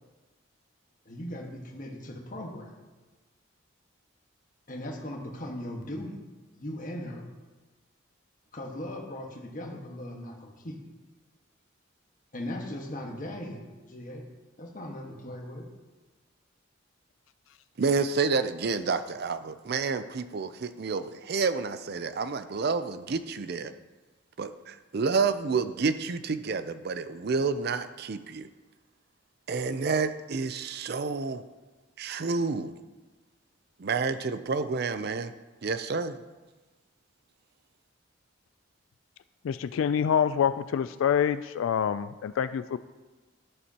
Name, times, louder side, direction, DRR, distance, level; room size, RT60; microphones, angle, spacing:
voice 1, 1.0-2.8 4.7-6.2 6.5-7.3 8.5-10.8 12.3-14.2 14.6-15.7, left 1 dB, 40° left, 1 dB, 1.5 m, -38 dB
voice 2, 17.8-23.7 24.4-28.5 29.5-31.4 32.0-32.7 33.8-35.3 35.6-36.2, right 4 dB, 50° right, 12 dB, 0.4 m, -29 dB
voice 3, 39.4-42.8, left 8 dB, 80° left, 13 dB, 0.3 m, -26 dB
11.0 x 11.0 x 2.9 m, 1.3 s
head